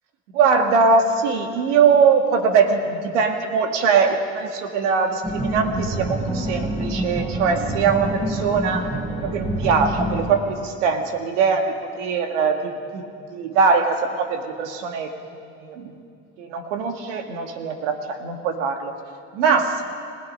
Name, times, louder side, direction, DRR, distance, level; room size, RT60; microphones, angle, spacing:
voice 1, 0.3-8.9 9.2-13.0 13.3-15.1 15.6-15.9 16.4-18.9 19.3-19.8, right 5 dB, 90° right, 5 dB, 1.8 m, -21 dB
sound 1, 5.2-10.3, right 1 dB, 15° right, 3.6 m, -27 dB
30.0 x 16.5 x 5.4 m, 2.5 s
supercardioid pair, 80°, 35 cm